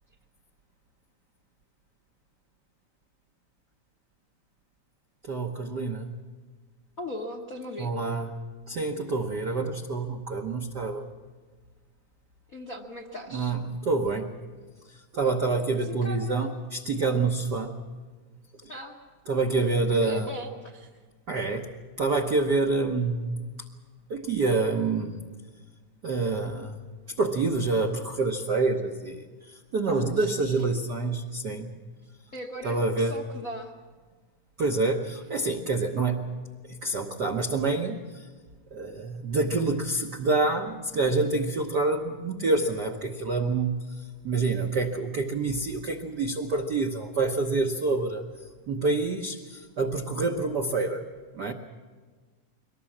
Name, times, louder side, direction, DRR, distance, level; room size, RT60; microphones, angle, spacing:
voice 1, 5.2-6.1 7.8-8.3 8.7-11.0 13.3-13.6 13.8-14.3 14.9-17.8 19.3-20.3 21.3-21.7 22.0-23.5 24.1-25.2 26.0-26.7 27.2-31.7 32.6-33.2 34.6-36.2 36.7-38.3 38.7-48.2 48.7-51.0 51.3-51.5, right 3 dB, 70° right, 3 dB, 0.9 m, -27 dB
voice 2, 7.0-7.9 12.5-13.6 15.8-16.5 18.7-19.0 19.9-20.9 29.9-30.6 32.3-33.7, left 1 dB, 60° left, 2 dB, 0.9 m, -38 dB
23.5 x 19.0 x 7.3 m, 1.4 s
omnidirectional pair, 3.5 m